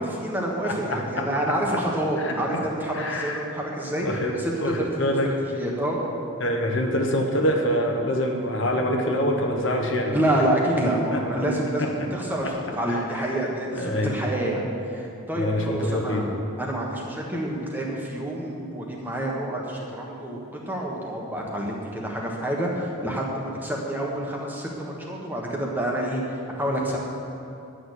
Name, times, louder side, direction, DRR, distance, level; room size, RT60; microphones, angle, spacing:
voice 1, 0.0-4.1 4.3-6.0 10.1-14.6 14.9-16.2 16.6-20.4 20.7-27.0, right 1 dB, 10° right, -2 dB, 1.3 m, -28 dB
voice 2, 0.6-1.5 2.2-2.6 2.9-3.4 3.9-4.3 4.6-5.3 6.4-10.1 11.1-11.2 11.8-12.1 12.9-13.4 13.8-14.1 15.4-16.3, equal, 60° left, 2 dB, 1.2 m, -26 dB
11.5 x 6.5 x 8.2 m, 2.7 s
head